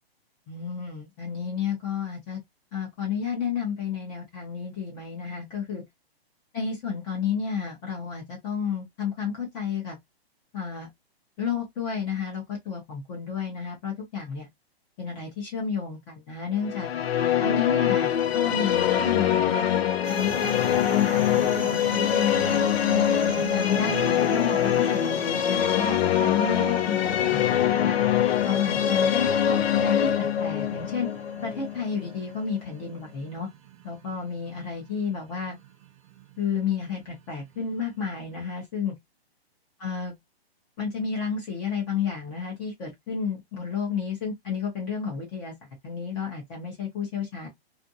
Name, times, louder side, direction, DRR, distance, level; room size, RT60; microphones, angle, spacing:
voice 1, 0.5-2.4 2.7-5.8 6.5-10.0 10.5-10.9 11.4-14.5 15.0-16.9 17.4-22.6 23.2-28.0 28.4-31.1 31.4-33.5 33.8-35.6 36.4-38.9 39.8-40.1 40.8-45.5 45.8-47.5, left 6 dB, 15° left, 0.6 m, -31 dB
sound 1, 16.6-32.7, left 10 dB, 75° left, 0.6 m, -24 dB
sound 2, 20.0-38.5, right 9 dB, 30° right, 0.5 m, -42 dB
2.5 x 2.4 x 2.6 m
hypercardioid pair, 155°, 32 cm